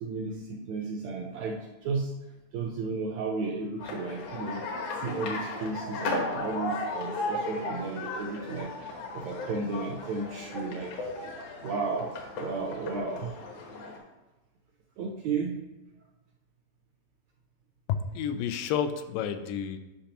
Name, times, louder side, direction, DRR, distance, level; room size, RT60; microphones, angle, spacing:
voice 1, 0.0-2.1 2.5-4.6 5.0-11.3 11.6-13.4 15.0-15.6, right 4 dB, 75° right, 0 dB, 1.7 m, -34 dB
sound 1, 3.8-14.0, left 2 dB, 70° left, 2.4 m, -36 dB
voice 2, 17.9-19.8, left 8 dB, 85° left, 9 dB, 2.3 m, -30 dB
10.5 x 5.8 x 2.9 m, 1.1 s
omnidirectional pair, 3.9 m